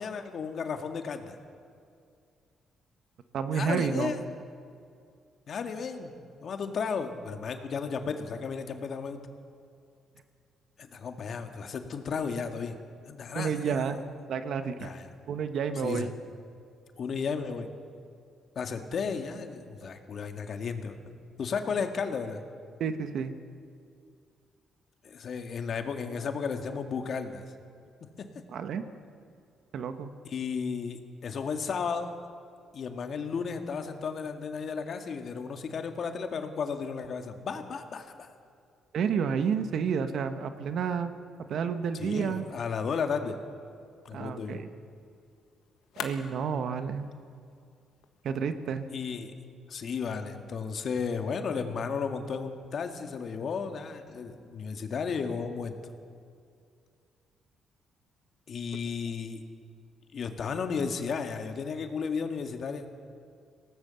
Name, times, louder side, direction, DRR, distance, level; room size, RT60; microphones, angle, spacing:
voice 1, 0.0-1.4 3.5-4.2 5.5-9.2 10.8-12.8 13.1-13.8 14.8-15.1 15.8-16.1 17.0-17.7 18.6-22.4 25.0-27.5 28.2-28.3 30.2-32.1 32.7-38.3 41.9-43.4 44.1-44.6 48.9-49.3 49.7-55.9 58.5-59.4 60.1-62.9, left 5 dB, 55° left, 6 dB, 1.9 m, -34 dB
voice 2, 3.3-4.1 13.3-14.0 14.3-14.9 15.3-16.1 22.8-23.3 28.5-28.9 29.7-30.1 38.9-41.2 41.5-42.4 44.1-44.7 46.0-47.1 48.2-48.9, right 6 dB, 65° right, 9 dB, 1.3 m, -30 dB
sound 1, 43.6-49.5, left 9 dB, 85° left, 1.4 m, -48 dB
23.5 x 18.0 x 7.1 m, 2.3 s
cardioid pair, 90°, 0 cm